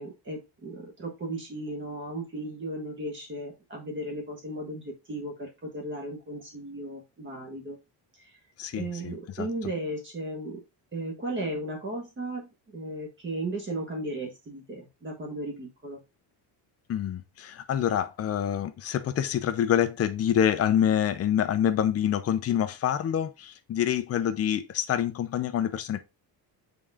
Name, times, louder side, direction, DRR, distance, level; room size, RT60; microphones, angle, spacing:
voice 1, 0.0-7.8 8.2-8.4 8.7-10.6 10.9-16.0, right 1 dB, 25° right, 1.6 m, -35 dB
voice 2, 8.6-9.5 16.9-26.0, left 9 dB, 35° left, 0.7 m, -26 dB
6.8 x 3.9 x 3.5 m
cardioid pair, 180°, 44 cm